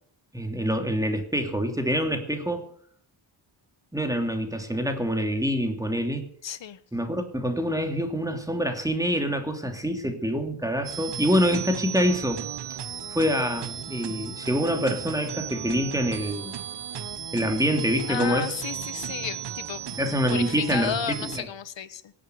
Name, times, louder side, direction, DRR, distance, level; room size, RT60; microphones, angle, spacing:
voice 1, 0.3-2.7 3.9-6.3 6.9-12.4 13.1-16.5 17.3-18.5 20.0-21.5, equal, 5° right, 4 dB, 3.1 m, -26 dB
voice 2, 6.4-6.8 18.1-22.1, left 9 dB, 60° left, 14 dB, 1.3 m, -33 dB
sound 1, 10.8-21.4, right 9 dB, 55° right, 1.2 m, -35 dB
17.5 x 8.9 x 8.2 m, 0.62 s
cardioid pair, 75°, 49 cm